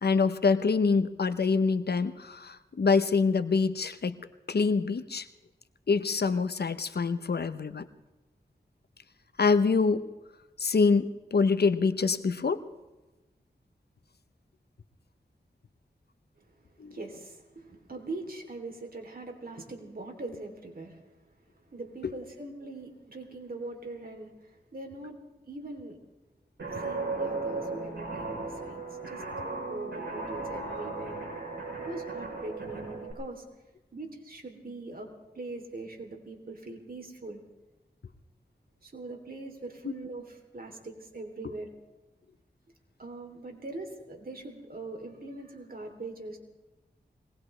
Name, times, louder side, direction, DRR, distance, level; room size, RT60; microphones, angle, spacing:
voice 1, 0.0-4.2 4.5-5.3 5.9-7.8 9.4-10.0 10.6-12.6 16.8-17.0, left 4 dB, 70° left, 12 dB, 0.8 m, -25 dB
voice 2, 16.9-21.0 21.7-25.1 25.5-26.0 26.7-31.2 31.8-33.4 33.9-37.4 38.8-41.7 43.0-46.4, right 2 dB, 60° right, 3 dB, 3.1 m, -42 dB
Guitar, 26.6-33.1, right 3 dB, 85° right, 6.2 m, -36 dB
22.5 x 19.5 x 3.3 m, 1.1 s
cardioid pair, 45°, 17 cm